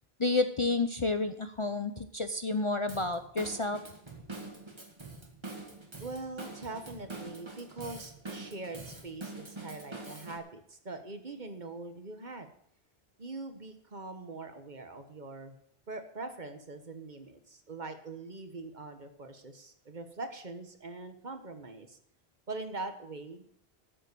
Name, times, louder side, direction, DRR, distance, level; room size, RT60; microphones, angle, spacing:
voice 1, 0.2-3.8, left 3 dB, 35° left, 8 dB, 0.7 m, -30 dB
Drum kit / Drum, 2.9-10.4, right 3 dB, 25° right, 1.8 m, -45 dB
voice 2, 6.0-12.5 13.2-15.6 15.9-22.0 22.5-23.4, right 3 dB, 45° right, 7 dB, 1.4 m, -42 dB
13.5 x 7.6 x 6.8 m, 0.72 s
omnidirectional pair, 1.1 m